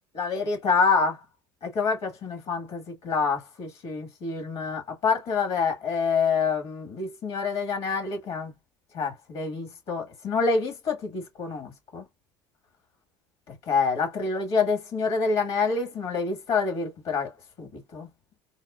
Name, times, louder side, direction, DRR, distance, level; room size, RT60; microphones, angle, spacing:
voice 1, 0.1-1.2 1.6-8.5 8.9-12.0 13.5-17.3 17.6-18.1, left 5 dB, 55° left, 1.8 m, -27 dB
4.1 x 2.2 x 2.5 m
hypercardioid pair, 80°, 12 cm